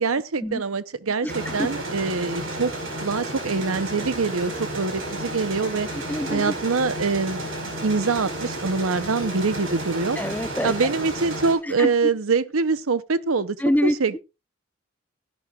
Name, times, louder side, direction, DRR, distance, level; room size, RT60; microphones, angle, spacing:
voice 1, 0.0-2.7 3.0-5.9 6.3-7.4 7.8-10.2 10.6-13.6 13.8-14.2, right 4 dB, 85° right, 0.8 m, -24 dB
voice 2, 1.2-1.7 5.9-6.5 10.2-10.9 11.6-11.9 13.6-14.0, equal, 10° left, 0.5 m, -26 dB
sound 1, 1.3-11.5, right 1 dB, 70° right, 5.0 m, -32 dB
16.0 x 11.0 x 2.4 m
head